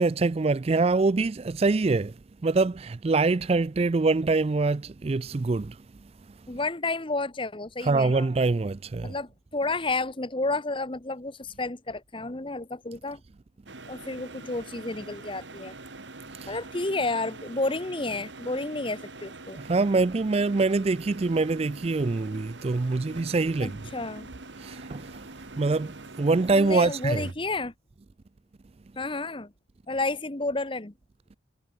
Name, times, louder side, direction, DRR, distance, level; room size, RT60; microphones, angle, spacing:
voice 1, 0.0-2.1 2.4-5.7 7.8-9.1 16.4-16.5 19.7-23.8 24.6-25.0 25.6-27.3, right 3 dB, 30° right, 0.4 m, -24 dB
voice 2, 6.5-8.3 9.0-13.2 13.9-15.7 16.5-19.6 23.6-24.3 26.5-27.7 29.0-29.5 29.9-30.9, left 2 dB, 30° left, 1.1 m, -31 dB
sound 1, 13.7-27.3, right 2 dB, 80° right, 3.7 m, -44 dB
head